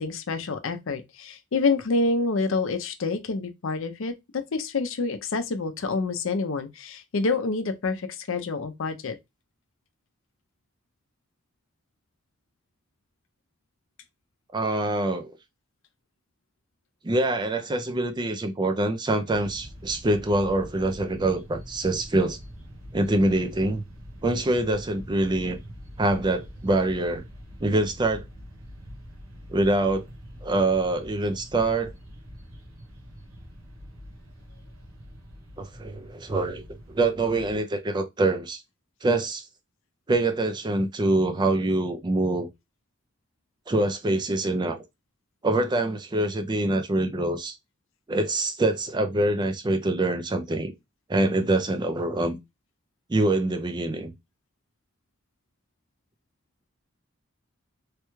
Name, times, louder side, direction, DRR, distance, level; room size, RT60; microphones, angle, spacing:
voice 1, 0.0-4.1 4.5-9.2, left 3 dB, 65° left, 0.5 m, -27 dB
voice 2, 14.5-15.3 17.0-22.4 22.9-23.8 24.2-25.6 26.0-27.2 27.6-28.3 29.5-30.0 30.4-31.9 35.6-36.6 36.9-38.6 39.0-39.4 40.1-42.5 43.7-44.8 45.4-47.5 48.1-50.7 51.1-52.4 53.1-54.1, right 2 dB, 20° right, 0.4 m, -25 dB
sound 1, 19.3-37.6, equal, 80° right, 1.0 m, -44 dB
3.2 x 2.2 x 3.0 m
head